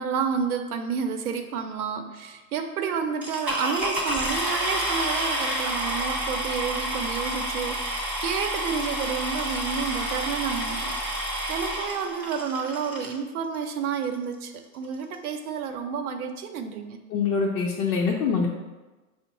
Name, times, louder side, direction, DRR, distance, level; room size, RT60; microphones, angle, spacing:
voice 1, 0.0-17.0, right 6 dB, 85° right, 5 dB, 0.6 m, -30 dB
sound 1, 3.2-13.2 13.9-14.0 14.5-14.6 14.8-15.1, right 1 dB, 5° right, 0.3 m, -29 dB
voice 2, 17.1-18.5, left 5 dB, 70° left, -3 dB, 0.7 m, -24 dB
4.5 x 2.0 x 3.9 m, 1.2 s
hypercardioid pair, 135°, 43 cm